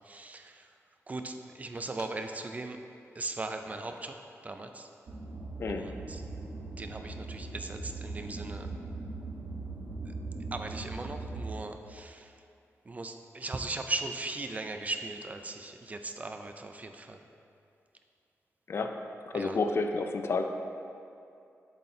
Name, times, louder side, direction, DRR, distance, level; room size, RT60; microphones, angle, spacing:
voice 1, 0.1-0.5 1.1-2.8 3.2-4.1 4.4-4.9 5.7-6.2 6.8-8.7 10.5-12.3 12.9-17.2 19.3-19.6, right 2 dB, 30° right, 6 dB, 0.3 m, -38 dB
sound 1, 5.1-11.5, right 3 dB, 60° right, 0.9 m, -40 dB
voice 2, 18.7-19.0 19.3-20.5, left 3 dB, 50° left, 6 dB, 0.4 m, -30 dB
7.9 x 3.7 x 4.2 m, 2.5 s
wide cardioid pair, 120°, 5 cm